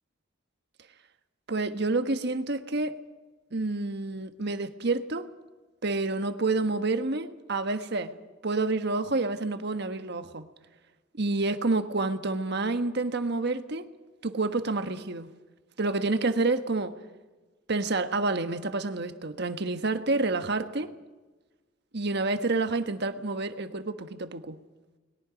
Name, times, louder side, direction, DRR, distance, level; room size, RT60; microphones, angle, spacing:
voice 1, 1.5-3.0 3.5-5.3 5.8-8.2 8.4-10.4 11.2-13.9 14.2-15.3 15.8-17.0 17.7-20.9 21.9-24.6, right 3 dB, 60° right, 1.3 m, -28 dB
30.0 x 21.5 x 5.2 m
head